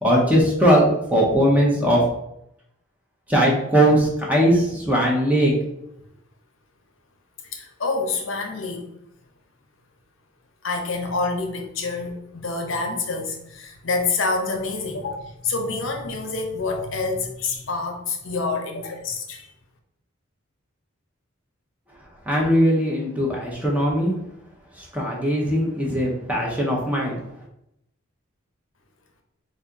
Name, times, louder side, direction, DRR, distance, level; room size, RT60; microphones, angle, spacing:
voice 1, 0.0-2.0 3.3-5.5 22.3-24.1 24.8-27.2, equal, 5° right, -2 dB, 0.7 m, -20 dB
voice 2, 7.4-8.9 10.6-19.5, left 3 dB, 70° left, 3 dB, 0.8 m, -27 dB
4.2 x 2.6 x 3.5 m, 0.79 s
head